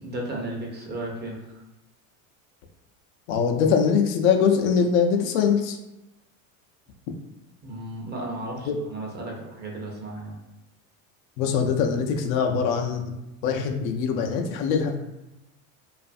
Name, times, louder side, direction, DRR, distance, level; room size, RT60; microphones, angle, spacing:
voice 1, 0.0-1.6 7.6-10.3, right 1 dB, 25° right, -1 dB, 0.6 m, -34 dB
voice 2, 3.3-5.8 8.7-8.8 11.4-13.0 13.4-14.9, left 6 dB, 80° left, 3 dB, 0.5 m, -22 dB
2.5 x 2.4 x 2.4 m, 0.96 s
supercardioid pair, 95°, 41 cm